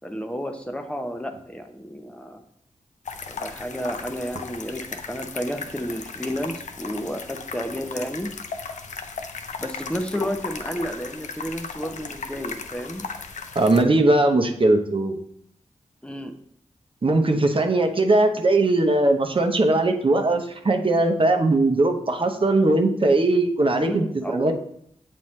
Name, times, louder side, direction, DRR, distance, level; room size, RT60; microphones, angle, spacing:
voice 1, 0.0-2.4 3.3-8.3 9.6-13.0 16.0-16.3 23.7-24.5, equal, 10° left, 5 dB, 0.7 m, -31 dB
sound 1, 3.1-13.8, left 5 dB, 75° left, 0.5 m, -36 dB
voice 2, 13.5-15.2 17.0-24.5, right 2 dB, 45° right, 4 dB, 0.8 m, -20 dB
7.2 x 4.3 x 3.2 m, 0.68 s
cardioid pair, 40°, 13 cm